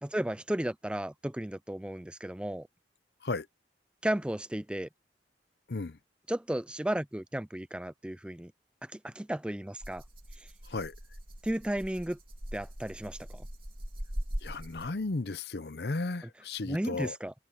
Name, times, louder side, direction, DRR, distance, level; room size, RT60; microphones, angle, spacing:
voice 1, 0.0-2.7 4.0-4.9 6.3-8.5 8.8-10.0 10.4-10.5 11.4-12.2 12.5-13.5 16.6-17.3, right 1 dB, 5° right, 0.4 m, -34 dB
voice 2, 5.7-6.0 10.7-10.9 14.4-17.2, left 3 dB, 65° left, 0.8 m, -34 dB
Rattle (instrument), 9.8-15.1, equal, 30° right, 2.6 m, -41 dB
head